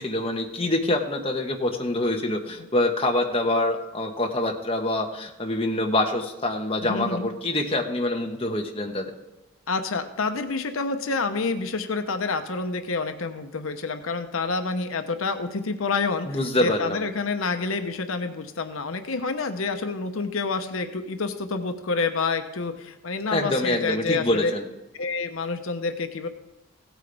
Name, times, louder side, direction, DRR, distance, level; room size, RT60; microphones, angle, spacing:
voice 1, 0.0-9.0 16.3-17.0 23.3-24.7, left 1 dB, 25° left, 2 dB, 1.1 m, -25 dB
voice 2, 6.8-7.3 9.7-24.5 24.9-26.3, left 4 dB, 80° left, 7 dB, 0.8 m, -28 dB
16.5 x 9.0 x 3.4 m, 1.0 s
head